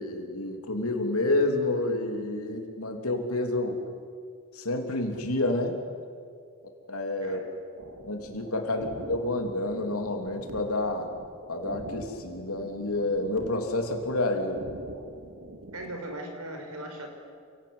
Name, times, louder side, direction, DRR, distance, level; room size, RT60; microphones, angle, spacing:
voice 1, 0.0-3.8 4.5-5.8 6.9-7.4 8.1-11.1 11.5-14.6, left 2 dB, 85° left, 3 dB, 3.2 m, -29 dB
sound 1, 7.8-16.0, right 1 dB, 65° right, 2.7 m, -43 dB
voice 2, 15.7-17.1, right 1 dB, 85° right, 3 dB, 5.3 m, -39 dB
28.5 x 18.0 x 9.7 m, 2.2 s
head